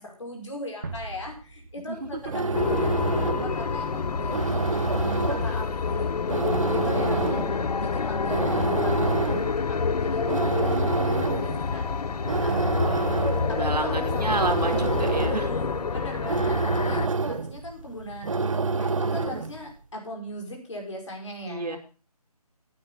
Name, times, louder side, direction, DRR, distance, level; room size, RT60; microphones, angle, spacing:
voice 1, 0.0-4.5 4.9-6.2 6.7-11.8 12.4-13.1 13.5-14.5 15.2-18.3 18.8-21.8, left 1 dB, 50° left, 1 dB, 5.3 m, -38 dB
sound 1, 0.8-3.7, right 3 dB, 30° right, 1.5 m, -42 dB
sound 2, 2.1-19.6, right 4 dB, 55° right, 1.0 m, -28 dB
sound 3, 2.5-17.1, left 5 dB, 80° left, 0.6 m, -28 dB
voice 2, 7.1-7.5 12.7-15.5 21.4-21.8, right 3 dB, 85° right, 6 dB, 2.9 m, -31 dB
15.0 x 9.5 x 3.9 m, 0.35 s
figure-of-eight pair, 175°, 20 cm